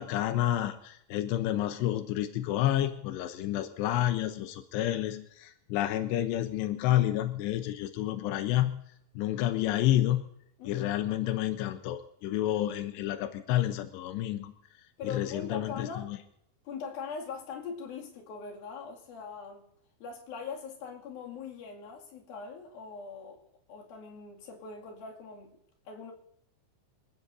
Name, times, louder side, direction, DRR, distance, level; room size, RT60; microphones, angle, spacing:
voice 1, 0.0-8.8 9.2-10.2 10.7-14.5 15.0-16.2, left 13 dB, 80° left, 2.5 m, -29 dB
voice 2, 10.6-11.1 15.0-16.1 16.6-19.7 20.0-23.4 23.7-25.6 25.9-26.1, left 5 dB, 55° left, 3.7 m, -41 dB
26.5 x 15.5 x 2.7 m
omnidirectional pair, 5.9 m